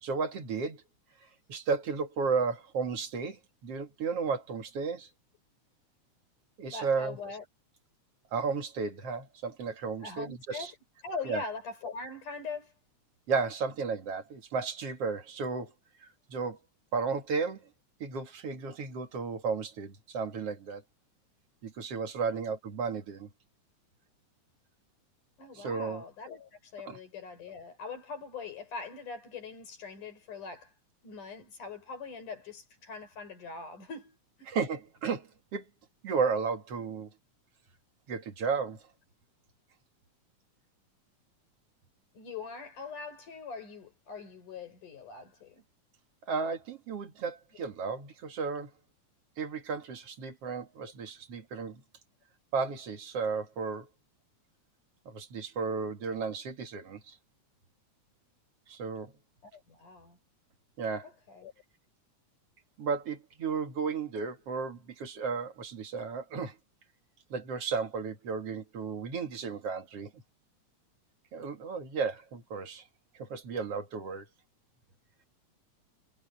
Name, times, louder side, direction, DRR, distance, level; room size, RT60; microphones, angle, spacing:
voice 1, 0.0-0.8 1.5-5.1 6.6-7.2 8.3-10.7 11.2-11.4 13.3-15.7 16.3-16.6 16.9-17.6 18.0-20.8 21.6-23.3 25.6-26.0 26.9-27.0 34.5-35.6 36.0-37.1 38.1-38.8 46.3-48.7 49.4-51.8 52.5-53.9 55.1-57.2 58.7-59.1 60.8-61.1 62.8-66.6 67.3-70.2 71.3-72.8 73.2-74.3, right 5 dB, 50° right, 2.9 m, -33 dB
voice 2, 6.7-7.5 10.0-10.8 11.0-12.7 22.3-22.4 25.4-30.7 31.0-34.5 42.1-45.6 59.5-60.2 61.0-61.5, left 4 dB, 90° left, 7.1 m, -42 dB
omnidirectional pair, 3.5 m